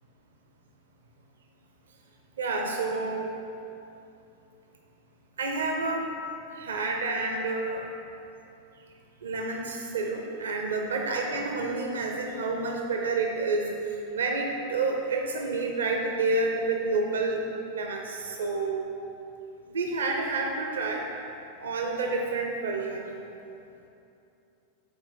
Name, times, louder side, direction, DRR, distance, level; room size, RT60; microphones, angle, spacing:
voice 1, 2.4-3.3 5.4-6.1 6.5-7.8 9.2-17.4 17.7-18.9 19.7-21.1 21.6-23.1, right 3 dB, 65° right, 2 dB, 0.7 m, -29 dB
8.6 x 4.3 x 5.6 m, 2.8 s
figure-of-eight pair, 90°, 0 cm